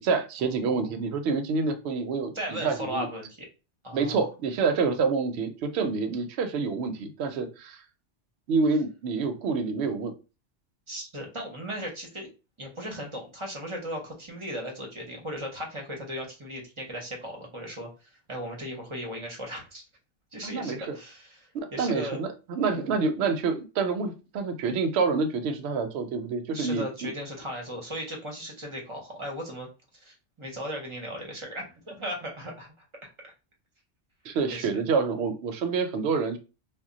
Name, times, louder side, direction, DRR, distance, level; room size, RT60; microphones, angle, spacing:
voice 1, 0.0-2.3 2.6-3.1 3.9-7.8 8.5-10.1 20.4-21.0 21.5-27.1 34.2-36.4, right 4 dB, 70° right, 7 dB, 0.8 m, -27 dB
voice 2, 0.6-1.1 2.3-3.5 3.8-4.3 10.9-12.3 12.6-19.9 20.3-22.2 22.7-23.0 26.5-33.1 34.5-34.8, equal, 30° right, 0 dB, 0.7 m, -37 dB
2.2 x 2.1 x 3.7 m, 0.30 s
omnidirectional pair, 1.2 m